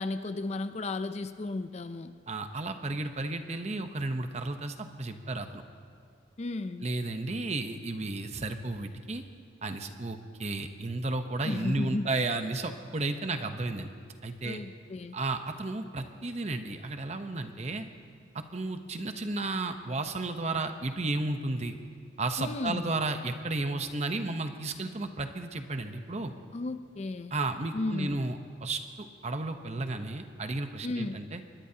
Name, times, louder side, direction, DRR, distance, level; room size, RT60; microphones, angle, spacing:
voice 1, 0.0-2.1 6.4-6.8 11.4-12.1 14.4-15.2 22.4-22.9 26.5-27.3 27.7-28.2 30.8-31.2, left 2 dB, 35° left, 11 dB, 0.4 m, -34 dB
voice 2, 2.3-5.6 6.8-9.2 9.6-13.9 14.2-14.6 15.1-17.8 18.3-21.7 22.2-26.3 27.3-31.4, right 2 dB, 35° right, 7 dB, 0.9 m, -33 dB
24.0 x 20.0 x 2.8 m, 2.2 s
head